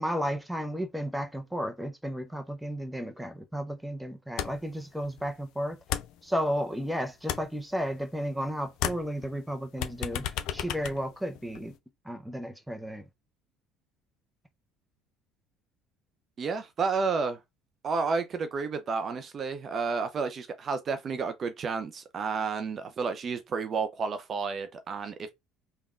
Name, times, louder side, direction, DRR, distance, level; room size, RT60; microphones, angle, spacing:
voice 1, 0.0-5.8 6.2-10.3 10.5-11.7 12.1-13.0, equal, 5° right, 0.6 m, -33 dB
sound 1, 4.4-4.8 5.0-6.8 7.1-8.5 8.7-11.8, left 10 dB, 65° left, 0.3 m, -35 dB
voice 2, 16.4-17.4 17.8-25.3, right 5 dB, 45° right, 0.4 m, -31 dB
3.4 x 2.2 x 2.4 m
hypercardioid pair, 60°, 0 cm